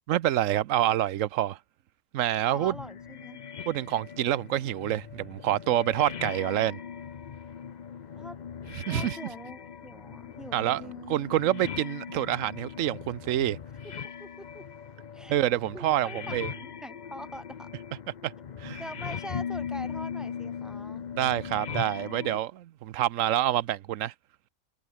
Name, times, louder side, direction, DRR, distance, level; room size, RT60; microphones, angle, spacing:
voice 1, 0.1-1.6 2.1-2.7 3.7-6.8 8.9-9.2 10.5-10.8 11.1-13.6 15.3-16.5 18.2-18.3 18.6-18.8 21.2-24.1, right 13 dB, 90° right, 1.0 m, -27 dB
sound 1, 2.5-22.4, left 7 dB, 45° left, 0.7 m, -39 dB
voice 2, 2.5-3.4 8.2-8.4 8.9-11.7 13.8-14.6 15.1-15.4 15.7-17.7 18.8-21.0, equal, ahead, 6.0 m, -44 dB
omnidirectional pair, 1.3 m